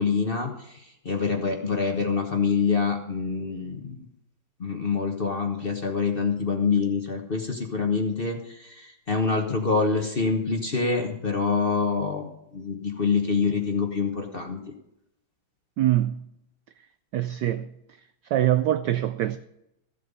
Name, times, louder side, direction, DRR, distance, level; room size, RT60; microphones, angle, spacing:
voice 1, 0.0-4.1 4.6-14.6, left 5 dB, 35° left, 1.1 m, -26 dB
voice 2, 15.8-16.3 17.1-17.7 18.3-19.4, right 13 dB, 80° right, 1.0 m, -24 dB
15.0 x 7.6 x 5.4 m
omnidirectional pair, 2.4 m